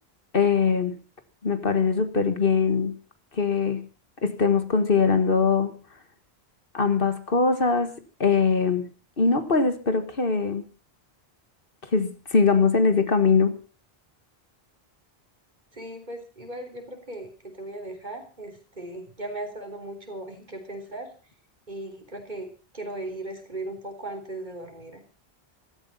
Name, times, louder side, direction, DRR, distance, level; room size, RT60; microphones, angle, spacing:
voice 1, 0.3-1.0 1.4-3.0 3.3-3.9 4.2-5.8 6.7-8.9 9.2-10.7 11.8-13.6, left 5 dB, 60° left, 9 dB, 1.8 m, -22 dB
voice 2, 15.7-21.1 21.7-25.0, right 1 dB, 50° right, 5 dB, 3.8 m, -37 dB
15.5 x 13.5 x 5.4 m, 0.36 s
omnidirectional pair, 1.0 m